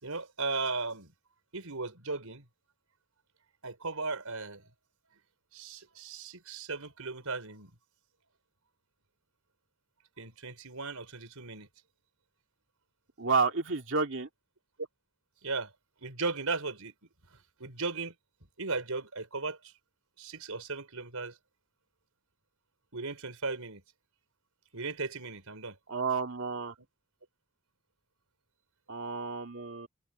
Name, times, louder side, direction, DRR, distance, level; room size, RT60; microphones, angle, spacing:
voice 1, 0.0-1.1 1.5-2.5 3.6-4.7 5.5-7.7 10.2-11.7 14.8-14.9 15.4-15.7 16.0-16.9 17.3-18.1 18.6-19.7 20.2-21.4 22.9-23.8 24.7-25.8, right 3 dB, 80° right, 4.7 m, -36 dB
voice 2, 13.2-14.3 25.9-26.7 28.9-29.9, right 4 dB, 60° right, 2.3 m, -30 dB
head